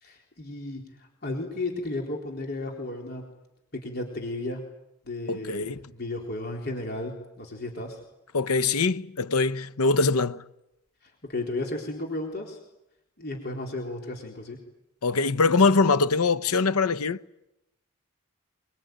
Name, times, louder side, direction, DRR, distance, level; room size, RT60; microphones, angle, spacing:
voice 1, 0.0-3.2 3.8-4.6 5.1-8.0 11.3-12.6 13.2-14.6, left 2 dB, 45° left, 3.9 m, -34 dB
voice 2, 5.3-5.9 8.3-10.4 15.0-17.2, left 4 dB, 90° left, 0.9 m, -23 dB
24.5 x 22.0 x 9.3 m
head